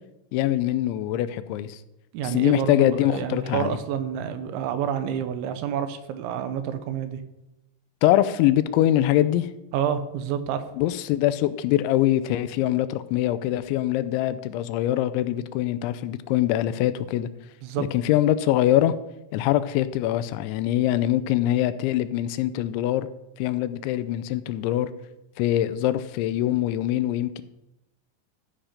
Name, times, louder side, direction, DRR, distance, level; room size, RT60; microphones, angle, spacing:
voice 1, 0.3-1.8 2.2-3.8 8.0-9.5 10.8-17.3 17.8-18.9 19.3-23.1 23.4-24.9 25.4-27.4, left 13 dB, 90° left, 14 dB, 3.0 m, -23 dB
voice 2, 2.1-7.2 9.7-10.6 17.6-17.8, right 9 dB, 90° right, 10 dB, 3.2 m, -28 dB
13.5 x 5.8 x 5.0 m, 0.92 s
omnidirectional pair, 5.2 m